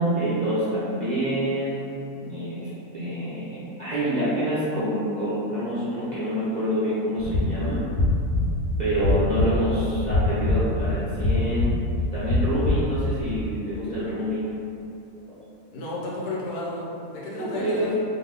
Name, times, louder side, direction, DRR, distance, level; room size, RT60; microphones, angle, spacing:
voice 1, 0.0-7.8 8.8-11.7 12.1-14.4 17.3-17.9, right 1 dB, 50° right, -12 dB, 0.5 m, -27 dB
sound 1, 7.2-13.3, left 2 dB, 65° left, 0.8 m, -24 dB
voice 2, 15.7-17.9, left 2 dB, 90° left, -5 dB, 1.2 m, -32 dB
2.7 x 2.6 x 3.3 m, 2.7 s
omnidirectional pair, 1.6 m